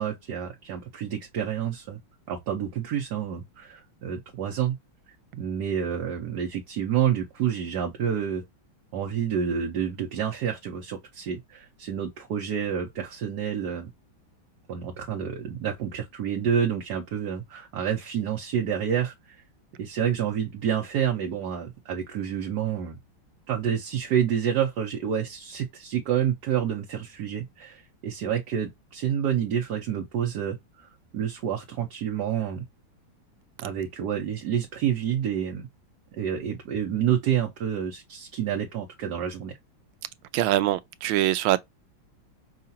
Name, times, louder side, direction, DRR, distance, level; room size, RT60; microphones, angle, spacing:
voice 1, 0.0-2.0 2.3-4.8 5.3-8.4 8.9-13.9 14.7-19.4 19.8-23.0 23.5-32.6 33.6-35.7 36.2-39.5, right 9 dB, 60° right, 1.3 m, -28 dB
voice 2, 40.3-41.6, right 13 dB, 80° right, 1.4 m, -23 dB
5.7 x 2.5 x 2.7 m
omnidirectional pair, 2.2 m